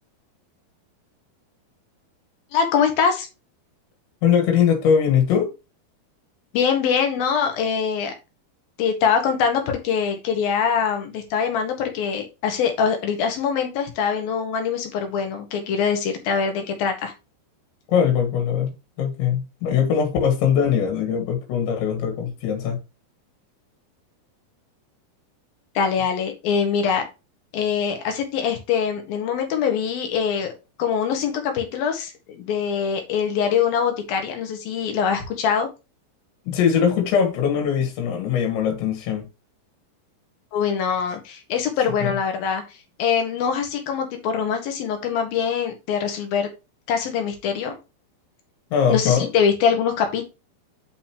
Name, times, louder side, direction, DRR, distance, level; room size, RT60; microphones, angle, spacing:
voice 1, 2.5-3.3 6.5-8.1 8.8-17.1 25.7-27.0 27.5-30.5 30.8-35.7 40.5-42.6 43.0-46.5 46.9-47.8 48.9-50.3, left 7 dB, 65° left, 3.1 m, -23 dB
voice 2, 4.2-5.5 17.9-22.8 36.5-39.3 42.0-42.1 48.7-49.3, left 7 dB, 85° left, 4.2 m, -21 dB
9.3 x 5.3 x 3.0 m
omnidirectional pair, 5.1 m